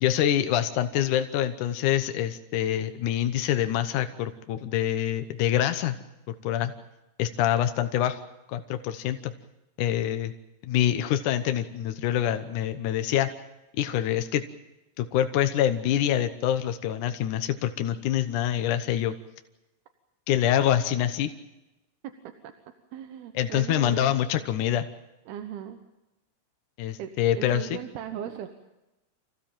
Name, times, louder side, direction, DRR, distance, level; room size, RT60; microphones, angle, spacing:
voice 1, 0.0-6.0 6.3-6.7 7.2-8.2 8.5-9.3 9.8-10.3 10.6-13.3 13.7-14.4 15.0-19.2 20.3-21.3 23.3-24.9 26.8-27.8, left 11 dB, 70° left, 9 dB, 1.9 m, -25 dB
voice 2, 22.9-24.2 25.3-25.8 27.0-28.5, right 10 dB, 70° right, 6 dB, 3.0 m, -38 dB
27.5 x 16.5 x 9.0 m, 0.96 s
omnidirectional pair, 4.9 m